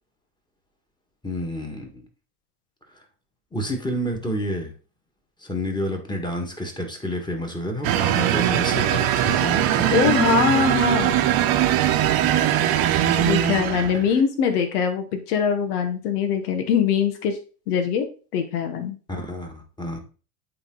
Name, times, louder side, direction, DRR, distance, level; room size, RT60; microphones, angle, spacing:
voice 1, 1.2-2.1 3.5-4.7 5.4-10.0 19.1-20.0, equal, 10° left, 2 dB, 1.9 m, -29 dB
sound 1, 7.8-14.1, right 11 dB, 50° right, 1.0 m, -21 dB
voice 2, 9.9-11.2 13.2-17.4 17.7-18.1 18.3-19.0, left 7 dB, 75° left, 6 dB, 1.6 m, -22 dB
8.8 x 3.8 x 3.9 m, 0.36 s
supercardioid pair, 105°, 46 cm